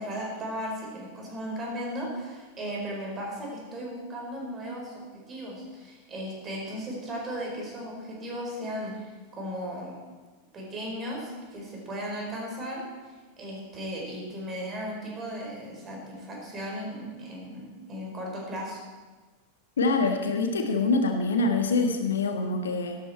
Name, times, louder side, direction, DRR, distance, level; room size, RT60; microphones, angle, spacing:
voice 1, 0.0-10.0 10.5-12.9 13.4-18.8, equal, 25° right, -2 dB, 4.7 m, -36 dB
voice 2, 19.8-23.0, left 3 dB, 65° left, 5 dB, 1.3 m, -25 dB
13.0 x 12.0 x 4.4 m, 1.3 s
figure-of-eight pair, 90°, 0 cm